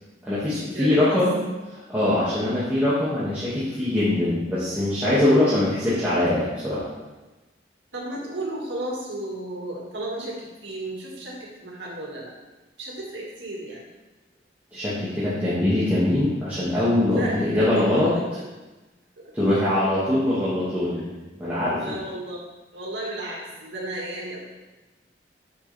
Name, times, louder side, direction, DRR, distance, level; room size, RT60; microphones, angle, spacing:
voice 1, 0.2-1.3 1.9-6.9 14.7-18.1 19.3-21.1 21.4-21.8, left 1 dB, 10° right, -12 dB, 2.1 m, -22 dB
voice 2, 0.7-1.2 2.3-2.6 7.9-12.3 12.8-13.9 17.1-17.9 19.5-19.6 20.9-21.0 21.8-22.4 22.7-24.4, right 1 dB, 85° right, -4 dB, 2.2 m, -33 dB
9.2 x 6.7 x 3.5 m, 1.1 s
head